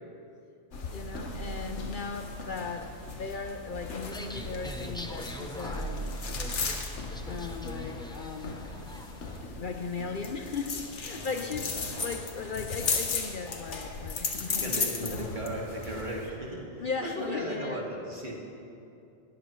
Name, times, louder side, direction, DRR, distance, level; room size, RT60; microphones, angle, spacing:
sound 1, 0.7-16.3, left 3 dB, 90° left, 1.5 m, -36 dB
voice 1, 0.9-6.2 7.3-8.6 9.6-15.2 16.8-17.8, left 5 dB, 55° left, 5 dB, 0.7 m, -37 dB
sound 2, 4.0-9.4, left 1 dB, 5° left, 0.6 m, -44 dB
voice 2, 11.1-12.0 14.3-18.4, right 1 dB, 45° right, -3 dB, 2.3 m, -37 dB
20.5 x 14.0 x 3.2 m, 2.7 s
omnidirectional pair, 1.2 m